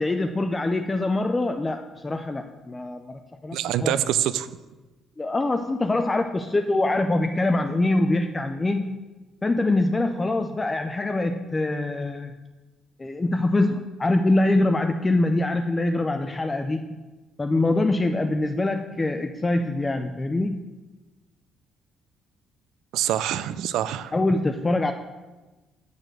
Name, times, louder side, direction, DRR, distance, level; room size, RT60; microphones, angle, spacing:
voice 1, 0.0-4.0 5.2-9.0 9.4-12.4 13.0-16.9 17.4-20.6 24.1-24.9, left 2 dB, 15° left, 6 dB, 0.4 m, -24 dB
voice 2, 3.5-4.5 22.9-24.1, right 11 dB, 80° right, 15 dB, 0.4 m, -25 dB
8.3 x 6.6 x 6.1 m, 1.2 s
cardioid pair, 150°, 0 cm